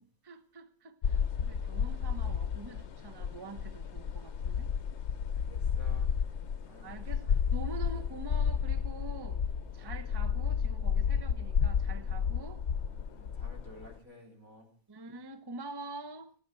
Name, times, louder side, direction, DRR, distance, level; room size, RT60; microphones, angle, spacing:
voice 1, 0.0-4.7 6.8-9.4 9.7-12.6 14.9-16.4, right 3 dB, 20° right, 0.9 m, -46 dB
sound 1, 1.0-14.0, left 7 dB, 60° left, 1.1 m, -32 dB
voice 2, 5.1-6.1 6.7-7.1 11.8-12.1 12.9-14.7, equal, 85° right, 4.4 m, -54 dB
17.5 x 10.0 x 6.2 m
omnidirectional pair, 1.4 m